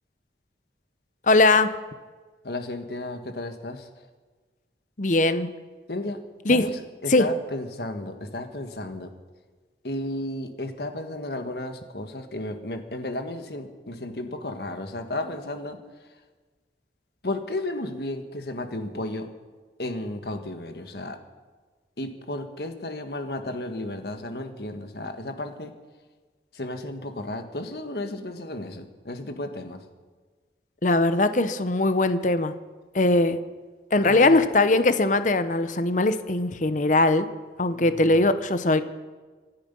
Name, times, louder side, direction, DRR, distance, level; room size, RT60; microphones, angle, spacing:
voice 1, 1.3-1.7 5.0-5.5 6.5-6.7 7.1-7.3 30.8-32.5 32.9-33.4 33.9-37.3 37.6-38.8, left 2 dB, 45° left, 12 dB, 0.9 m, -20 dB
voice 2, 2.4-3.9 5.9-6.2 6.5-9.1 9.8-15.8 17.2-19.3 19.8-21.2 22.0-25.7 26.5-29.8 34.0-34.4 37.7-38.2, left 1 dB, 60° left, 7 dB, 1.6 m, -33 dB
25.5 x 10.0 x 5.5 m, 1.4 s
head